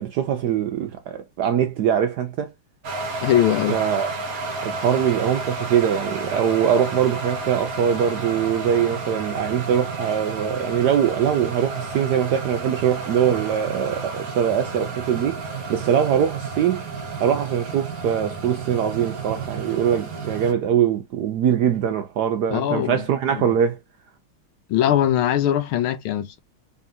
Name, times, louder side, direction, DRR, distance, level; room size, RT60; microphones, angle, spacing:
voice 1, 0.0-2.5 3.7-4.1 4.6-15.4 15.7-16.8 17.2-23.8, right 9 dB, 75° right, 0.9 m, -22 dB
sound 1, 2.8-20.5, right 3 dB, 50° right, 1.3 m, -31 dB
voice 2, 3.2-3.8 22.5-23.0 23.3-23.4 24.7-26.4, left 11 dB, 90° left, 1.7 m, -21 dB
4.1 x 3.7 x 2.6 m
omnidirectional pair, 2.3 m